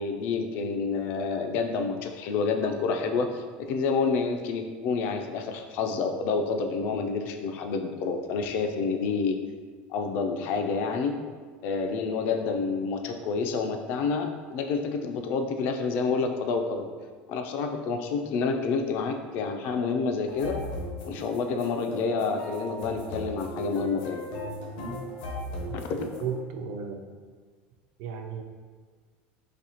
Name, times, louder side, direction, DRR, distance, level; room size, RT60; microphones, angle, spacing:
voice 1, 0.0-9.4 9.9-11.2 11.6-16.9 17.3-20.6 21.0-24.2 25.9-26.1, left 4 dB, 40° left, 5 dB, 0.3 m, -28 dB
sound 1, 20.3-26.4, left 1 dB, 80° left, 0.9 m, -37 dB
voice 2, 25.9-27.1 28.0-28.4, right 6 dB, 55° right, 4 dB, 0.4 m, -35 dB
4.1 x 2.7 x 2.8 m, 1.5 s
cardioid pair, 175°, 5 cm